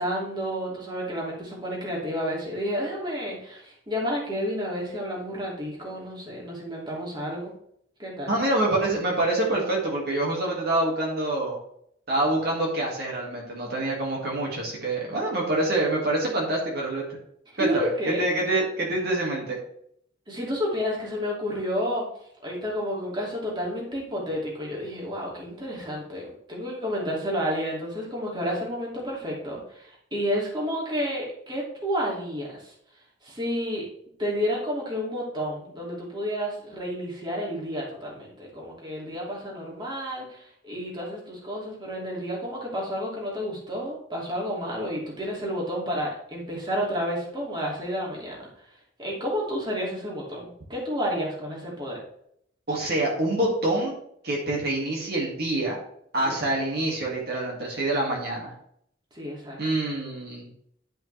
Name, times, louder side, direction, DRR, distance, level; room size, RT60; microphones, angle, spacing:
voice 1, 0.0-7.5 8.0-8.3 17.5-18.2 20.3-22.1 22.4-32.7 33.2-33.9 34.2-48.4 49.0-52.0 56.2-56.5 59.1-59.6, equal, 25° right, -4 dB, 2.6 m, -30 dB
voice 2, 8.3-11.6 12.1-17.2 17.6-17.9 18.2-19.6 52.7-54.0 54.2-55.8 56.1-58.5 59.6-60.5, right 2 dB, 60° right, -2 dB, 2.2 m, -26 dB
11.5 x 5.5 x 3.4 m, 0.70 s
head